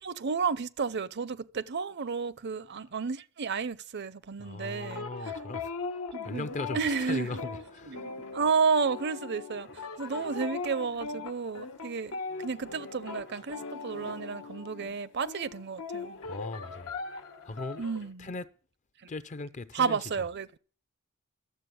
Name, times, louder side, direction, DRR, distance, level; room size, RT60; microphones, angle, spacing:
voice 1, 0.0-5.1 6.1-6.5 6.7-7.4 7.9-16.2 17.8-18.3 19.7-20.6, right 5 dB, 50° right, 0.6 m, -32 dB
voice 2, 4.4-8.1 16.2-17.0 17.4-17.8 18.2-18.5 19.1-20.0, left 3 dB, 35° left, 0.5 m, -39 dB
sound 1, 4.8-15.0 15.3-18.0, left 4 dB, 85° left, 1.2 m, -40 dB
sound 2, 6.3-10.7 11.1-11.6 12.2-15.1 16.1-18.1, left 2 dB, 55° left, 1.3 m, -53 dB
12.5 x 7.4 x 7.9 m
head